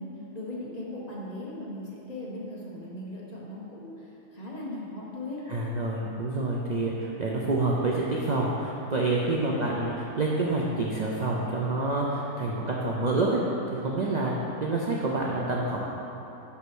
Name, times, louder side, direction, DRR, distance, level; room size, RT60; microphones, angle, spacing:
voice 1, 0.0-5.4 9.4-9.6, left 1 dB, 30° left, -6 dB, 1.2 m, -38 dB
voice 2, 5.5-13.4 13.7-14.3 14.6-15.8, right 2 dB, 55° right, -3 dB, 0.5 m, -27 dB
5.8 x 5.7 x 6.2 m, 2.9 s
omnidirectional pair, 1.6 m